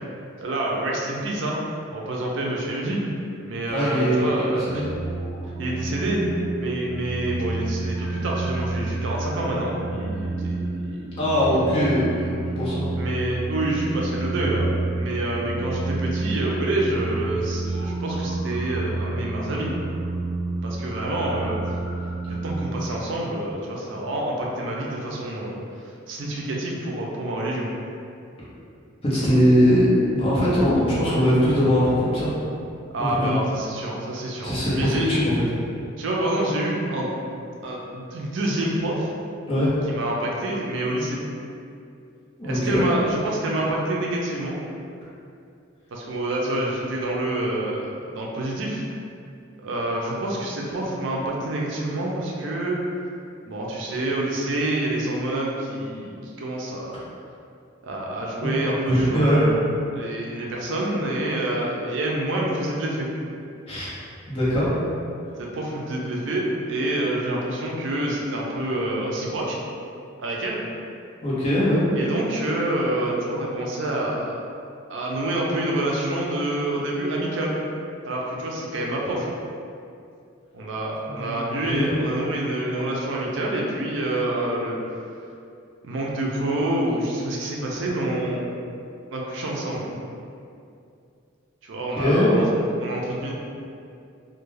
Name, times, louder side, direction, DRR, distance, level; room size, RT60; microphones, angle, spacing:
voice 1, 0.4-1.6 1.9-3.0 3.4-4.9 5.6-6.2 6.6-11.8 13.0-14.7 14.9-19.7 20.6-21.8 22.3-25.6 26.1-27.7 32.9-35.1 36.0-37.1 37.6-39.1 39.9-41.2 42.4-44.6 45.9-48.8 49.6-52.8 53.4-56.9 57.8-59.6 59.9-63.1 65.4-69.6 70.2-70.6 72.0-74.3 74.9-77.6 78.0-79.3 80.5-84.8 85.8-88.5 89.1-89.9 91.6-92.5 92.8-93.3, right 1 dB, 65° right, -2 dB, 0.4 m, -27 dB
voice 2, 3.7-4.9 11.2-12.9 29.0-32.3 33.0-33.4 34.4-35.3 39.5-39.7 42.4-42.8 58.4-58.5 58.9-59.4 63.7-63.9 64.3-64.7 71.2-71.8 81.1-81.4 81.6-81.9 92.0-92.3, equal, 30° left, -9 dB, 0.7 m, -21 dB
sound 1, 4.6-22.7, right 3 dB, 55° left, 0.9 m, -29 dB
2.3 x 2.2 x 3.1 m, 2.5 s
head